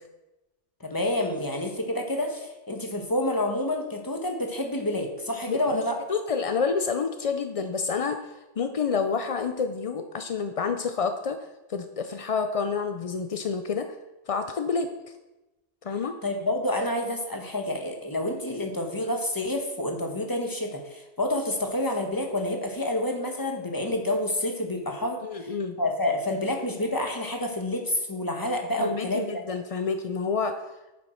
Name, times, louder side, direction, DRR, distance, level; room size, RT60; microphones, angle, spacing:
voice 1, 0.8-6.0 16.2-29.3, left 1 dB, 20° left, 3 dB, 1.2 m, -28 dB
voice 2, 5.5-5.8 6.1-11.4 11.7-13.9 14.3-14.9 15.8-16.2 25.2-25.8 28.8-30.5, left 5 dB, 55° left, 7 dB, 0.4 m, -28 dB
9.6 x 7.4 x 4.4 m, 1.0 s
omnidirectional pair, 1.2 m